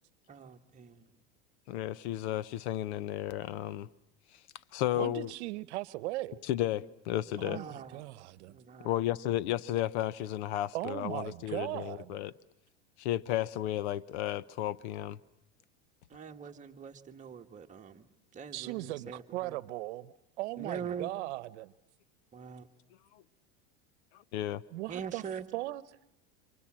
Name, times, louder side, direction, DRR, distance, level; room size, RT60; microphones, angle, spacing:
voice 1, 0.3-1.1 7.5-8.0 8.5-8.9 16.1-18.0 18.3-19.5 20.6-21.1 22.3-22.6 24.9-25.5, right 7 dB, 20° right, 1.7 m, -43 dB
voice 2, 1.7-3.9 4.3-4.4 4.7-5.3 6.5-7.6 8.8-12.3 13.0-15.2 23.1-23.2 24.1-24.6, left 13 dB, 75° left, 1.0 m, -33 dB
voice 3, 4.9-6.4 7.4-8.6 10.7-12.2 18.5-21.7 24.7-25.8, right 18 dB, 75° right, 1.0 m, -38 dB
28.0 x 26.5 x 7.6 m
supercardioid pair, 120°, 34 cm